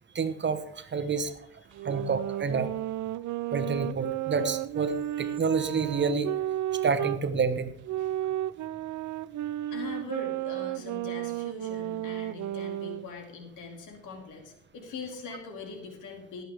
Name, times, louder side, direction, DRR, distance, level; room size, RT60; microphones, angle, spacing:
voice 1, 0.1-1.3 1.8-2.7 3.5-6.3 6.8-7.7, right 5 dB, 40° right, 10 dB, 1.1 m, -28 dB
voice 2, 1.6-2.0 8.0-8.2 9.7-16.4, left 4 dB, 85° left, 2 dB, 2.6 m, -42 dB
sound 1, 1.7-7.2 7.8-13.1, right 14 dB, 75° right, 0.5 m, -33 dB
17.5 x 8.0 x 3.5 m, 0.72 s
cardioid pair, 90°, 30 cm